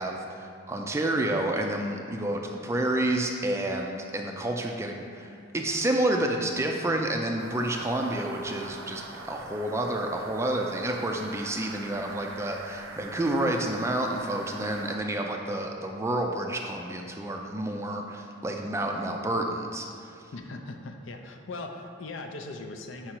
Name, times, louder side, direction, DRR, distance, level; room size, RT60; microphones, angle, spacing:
voice 1, 0.0-20.2, right 1 dB, 15° right, 2 dB, 0.3 m, -29 dB
sound 1, 7.4-15.0, right 3 dB, 85° right, 0.6 m, -43 dB
voice 2, 20.3-23.2, left 2 dB, 65° left, 5 dB, 0.5 m, -39 dB
5.0 x 4.7 x 4.4 m, 2.4 s
head